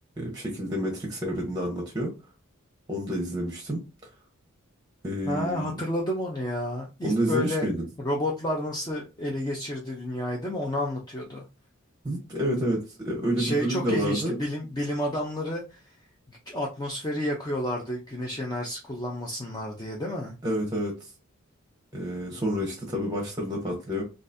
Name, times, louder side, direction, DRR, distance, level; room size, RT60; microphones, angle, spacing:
voice 1, 0.2-2.1 2.9-3.8 5.0-5.8 7.0-7.8 12.0-14.4 20.4-21.1 21.9-24.0, equal, 20° right, 0.8 m, -29 dB
voice 2, 5.3-7.6 8.0-11.4 13.3-15.9 16.3-20.3, left 1 dB, 20° left, 0.5 m, -30 dB
3.8 x 2.4 x 2.6 m
head